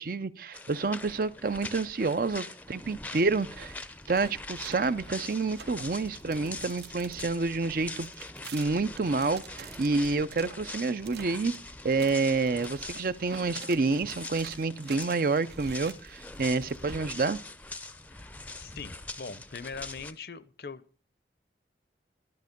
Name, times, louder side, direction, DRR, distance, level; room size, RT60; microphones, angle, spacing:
voice 1, 0.0-3.8 4.1-8.2 8.5-11.5 11.8-17.4, right 3 dB, 50° right, 0.5 m, -28 dB
sound 1, 0.5-20.1, left 2 dB, 10° left, 0.5 m, -43 dB
sound 2, 3.5-7.3 8.0-10.6 11.0-11.6 11.9-17.0, right 7 dB, 70° right, 0.9 m, -49 dB
sound 3, 4.6-12.1, equal, 25° right, 0.9 m, -56 dB
voice 2, 18.6-21.0, left 5 dB, 60° left, 0.6 m, -42 dB
11.5 x 10.5 x 5.2 m
head